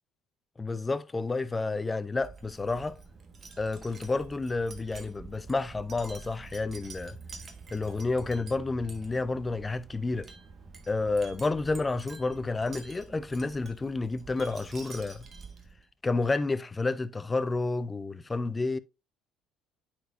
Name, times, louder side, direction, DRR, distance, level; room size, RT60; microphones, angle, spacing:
voice 1, 0.6-3.0 3.6-7.2 7.7-10.3 10.9-15.3 16.0-18.8, left 3 dB, 20° left, 0.5 m, -30 dB
Wind chime, 2.1-15.9, right 4 dB, 40° right, 1.5 m, -47 dB
9.1 x 4.5 x 2.6 m
hypercardioid pair, 65°, 0 cm